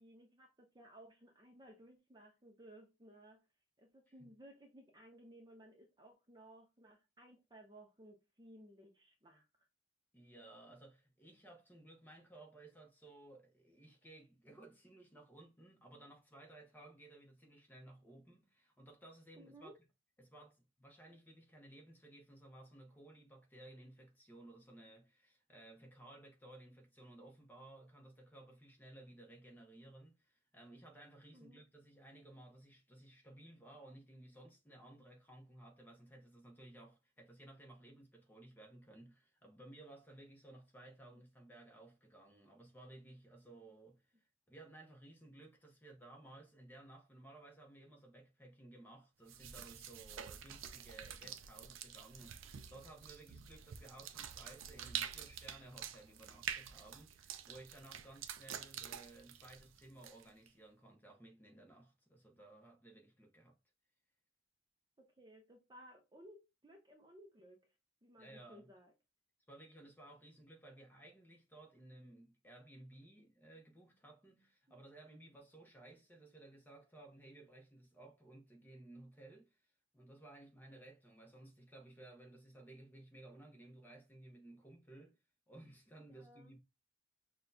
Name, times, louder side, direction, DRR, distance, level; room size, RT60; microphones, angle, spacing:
voice 1, 0.0-3.4 3.8-9.5 19.4-19.8 31.3-31.6 41.1-41.2 65.0-67.7 68.0-68.9 74.7-74.8 86.1-86.5, right 1 dB, 20° right, 0.5 m, -59 dB
voice 2, 10.1-19.7 20.2-63.6 68.2-68.7 69.5-79.6 79.9-85.2 85.5-86.6, right 1 dB, 10° left, 0.8 m, -58 dB
sound 1, 49.3-60.5, right 9 dB, 80° right, 0.5 m, -47 dB
6.0 x 2.3 x 2.6 m
head